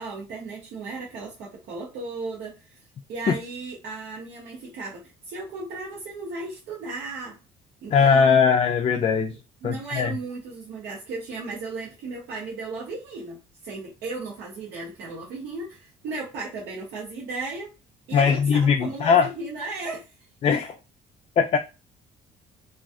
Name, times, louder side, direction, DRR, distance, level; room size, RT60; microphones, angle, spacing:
voice 1, 0.0-2.8 3.1-7.4 7.8-8.4 9.3-17.7 18.1-20.1, right 3 dB, 80° right, 0.9 m, -35 dB
voice 2, 7.9-9.4 9.6-10.1 18.1-19.3 20.4-20.8 21.4-21.6, left 6 dB, 35° left, 0.3 m, -20 dB
2.4 x 2.3 x 2.5 m
cardioid pair, 110°, 17 cm